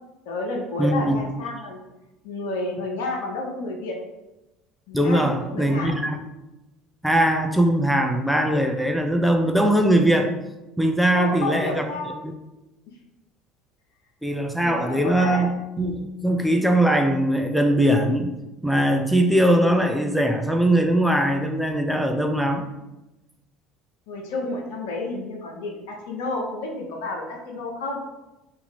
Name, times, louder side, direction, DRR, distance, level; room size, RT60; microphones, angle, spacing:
voice 1, 0.3-1.9 2.2-4.0 4.9-6.0 11.1-12.1 14.6-15.5 24.1-28.0, left 2 dB, 75° left, 1 dB, 0.7 m, -30 dB
voice 2, 0.8-1.2 4.9-6.2 7.0-10.3 10.8-11.8 12.2-12.3 14.2-18.3 18.6-22.6, right 1 dB, ahead, 4 dB, 0.5 m, -21 dB
2.8 x 2.7 x 4.2 m, 0.98 s
hypercardioid pair, 70°, 0 cm